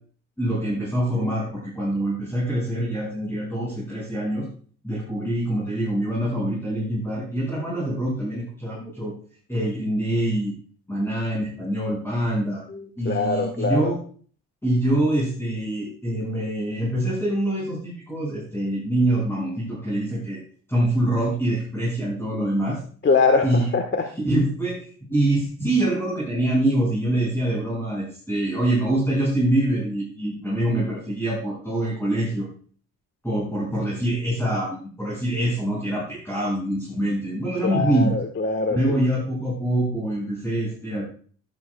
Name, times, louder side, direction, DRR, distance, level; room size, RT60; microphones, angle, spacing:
voice 1, 0.4-4.5 4.8-9.1 9.5-10.5 10.9-12.6 13.0-14.0 14.6-20.4 20.7-22.8 23.4-23.7 24.2-32.5 33.2-38.2 38.7-41.0, right 1 dB, 10° left, -7 dB, 5.7 m, -25 dB
voice 2, 12.7-13.9 23.0-24.1 37.6-39.0, left 4 dB, 40° left, 5 dB, 1.3 m, -23 dB
12.5 x 11.5 x 2.3 m, 0.43 s
cardioid pair, 90°, 30 cm